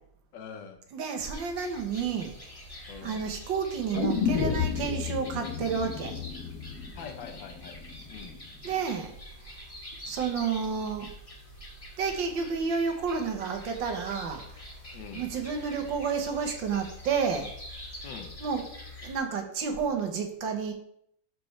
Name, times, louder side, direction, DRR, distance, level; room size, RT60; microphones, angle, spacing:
voice 1, 0.3-0.8 2.9-3.2 6.9-7.8 8.1-8.4 14.9-15.2 18.0-18.4, left 6 dB, 85° left, 6 dB, 1.6 m, -44 dB
voice 2, 0.9-2.7 3.0-6.2 8.6-9.1 9.4-9.5 10.1-11.1 12.0-14.6 15.2-17.5 18.4-20.7, right 6 dB, 85° right, 4 dB, 1.8 m, -31 dB
sound 1, 1.2-19.2, equal, 20° left, 1.6 m, -45 dB
sound 2, 3.9-8.0 8.3-8.4, left 7 dB, 65° left, 1.3 m, -31 dB
13.0 x 4.7 x 3.2 m, 0.70 s
omnidirectional pair, 2.0 m